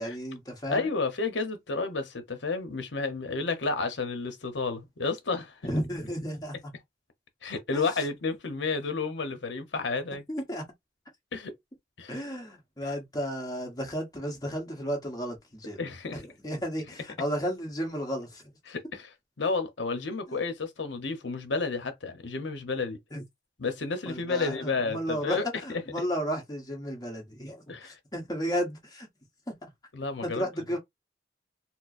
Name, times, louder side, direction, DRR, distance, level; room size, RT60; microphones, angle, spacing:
voice 1, 0.0-0.9 5.6-6.6 7.7-7.9 10.3-10.6 12.1-15.8 16.1-18.4 23.1-23.2 24.1-29.1 29.5-29.7 30.2-30.8, equal, 20° left, 1.1 m, -33 dB
voice 2, 0.7-5.5 7.4-10.2 11.3-11.5 12.0-12.1 15.8-16.2 18.7-19.1 19.4-23.0 23.6-25.8 27.7-27.9 29.9-30.4, left 4 dB, 70° left, 0.8 m, -31 dB
4.3 x 2.0 x 2.5 m
head